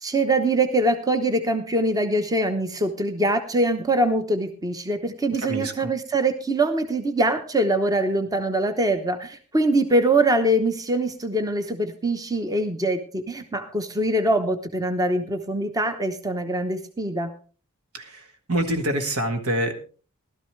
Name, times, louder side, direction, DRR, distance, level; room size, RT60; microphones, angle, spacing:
voice 1, 0.0-17.3, right 1 dB, 15° right, 8 dB, 0.9 m, -23 dB
voice 2, 5.4-5.9 17.9-18.2 18.5-19.7, right 1 dB, 80° right, 6 dB, 1.8 m, -26 dB
16.0 x 12.5 x 3.2 m, 0.38 s
head